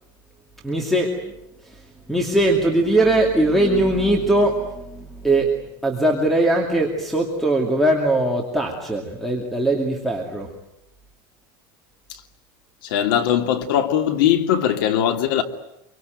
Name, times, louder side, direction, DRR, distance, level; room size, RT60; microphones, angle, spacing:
voice 1, 0.6-1.3 1.6-1.7 2.1-5.5 5.8-10.5, right 1 dB, ahead, 2.5 m, -20 dB
voice 2, 12.9-15.4, left 10 dB, 85° left, 2.9 m, -20 dB
26.0 x 24.0 x 9.2 m
cardioid pair, 170°, 11 cm